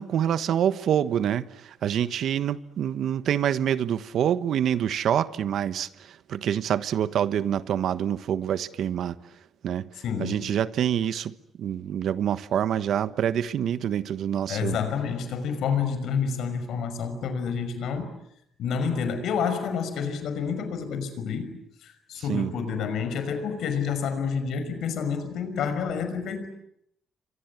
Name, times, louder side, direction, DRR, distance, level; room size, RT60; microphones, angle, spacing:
voice 1, 0.0-9.2 9.6-9.9 10.2-14.8 22.3-22.5, right 9 dB, 70° right, 1.2 m, -26 dB
voice 2, 10.0-10.5 14.5-18.1 18.6-26.5, left 6 dB, 75° left, 5.7 m, -29 dB
29.0 x 24.5 x 8.2 m
cardioid pair, 90°, 0 cm